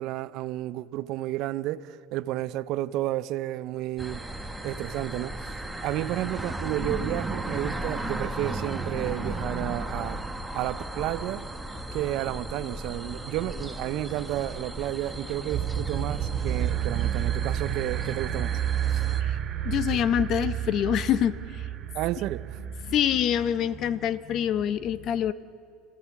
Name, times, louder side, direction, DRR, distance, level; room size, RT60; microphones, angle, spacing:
voice 1, 0.0-4.3 4.6-5.5 5.8-10.2 10.5-11.5 11.9-18.6 18.9-19.0 21.9-22.6, right 14 dB, 60° right, 0.7 m, -31 dB
sound 1, 4.0-19.2, right 1 dB, 5° right, 1.4 m, -35 dB
sound 2, 15.5-23.6, right 10 dB, 40° right, 2.8 m, -30 dB
voice 2, 19.6-21.7 22.8-25.3, left 9 dB, 50° left, 0.9 m, -26 dB
29.5 x 15.5 x 7.3 m
supercardioid pair, 110°, 0 cm